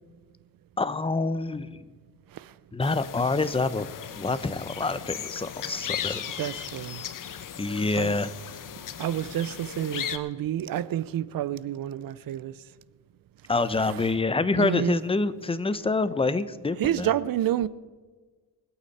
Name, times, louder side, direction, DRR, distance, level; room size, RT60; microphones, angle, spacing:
voice 1, 0.8-1.8 2.7-3.9 4.2-6.2 7.6-8.3 13.5-17.1, left 3 dB, 15° left, 0.8 m, -26 dB
sound 1, 2.8-10.2, left 9 dB, 50° left, 1.0 m, -37 dB
voice 2, 6.4-7.0 8.0-8.2 9.0-12.5 13.9-14.0 14.6-15.0 16.8-17.7, right 11 dB, 55° right, 0.7 m, -29 dB
23.5 x 8.7 x 4.3 m
cardioid pair, 80°, 42 cm